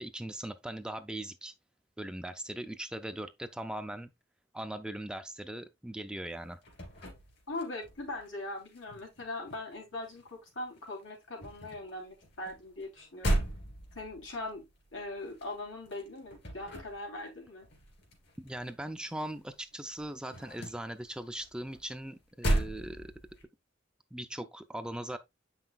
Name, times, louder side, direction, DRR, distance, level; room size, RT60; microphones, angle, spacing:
voice 1, 0.0-1.5 2.0-4.1 4.5-6.6 18.4-23.1 24.1-25.2, right 1 dB, 5° right, 0.3 m, -40 dB
sound 1, 6.3-8.3 8.5-10.5 10.8-19.5 19.7-23.4, right 1 dB, 60° left, 2.8 m, -37 dB
voice 2, 7.5-13.4 13.9-14.6 14.9-17.7, left 2 dB, 80° left, 2.9 m, -41 dB
7.8 x 5.7 x 2.3 m
head